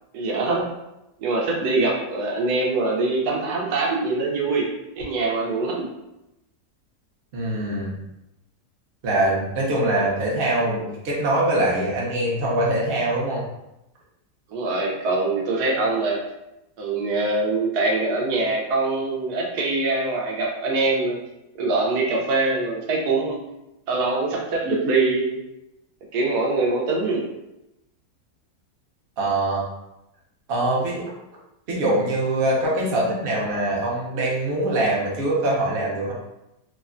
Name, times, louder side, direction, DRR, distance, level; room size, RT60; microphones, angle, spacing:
voice 1, 0.1-0.7 1.2-5.9 14.5-16.2 16.8-21.2 21.5-23.4 23.9-25.4 26.1-27.3, right 3 dB, 80° right, -1 dB, 1.2 m, -23 dB
voice 2, 7.3-8.0 9.0-13.5 29.2-29.7 30.5-31.1 31.7-36.1, right 1 dB, 50° right, -4 dB, 0.7 m, -23 dB
3.2 x 2.1 x 2.4 m, 0.89 s
omnidirectional pair, 1.7 m